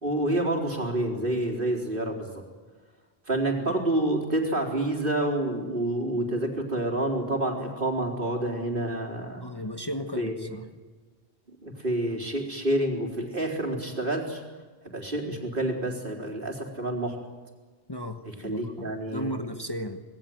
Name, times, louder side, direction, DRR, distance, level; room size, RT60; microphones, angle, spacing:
voice 1, 0.0-2.4 3.3-9.5 10.1-10.5 11.5-14.4 14.8-17.2 18.2-19.5, right 1 dB, 60° right, 1 dB, 4.3 m, -28 dB
voice 2, 9.4-10.6 17.9-20.0, equal, 25° left, 6 dB, 1.3 m, -35 dB
26.5 x 20.5 x 9.3 m, 1.4 s
omnidirectional pair, 1.0 m